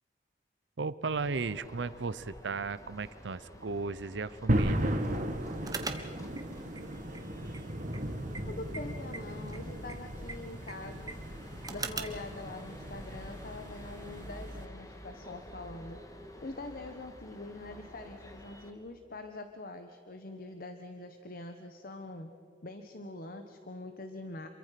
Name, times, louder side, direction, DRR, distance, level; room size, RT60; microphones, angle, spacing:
voice 1, 0.8-4.9, right 4 dB, 70° right, 15 dB, 0.7 m, -35 dB
sound 1, 1.0-18.7, left 1 dB, 20° left, 2.0 m, -49 dB
sound 2, 4.5-14.7, right 1 dB, 45° right, 2.0 m, -36 dB
sound 3, 5.6-12.3, right 4 dB, 20° right, 1.6 m, -44 dB
voice 2, 8.5-11.2 11.7-16.0 16.4-22.3 22.6-24.5, left 2 dB, 55° left, 6 dB, 1.3 m, -44 dB
27.5 x 23.5 x 5.9 m, 2.3 s
head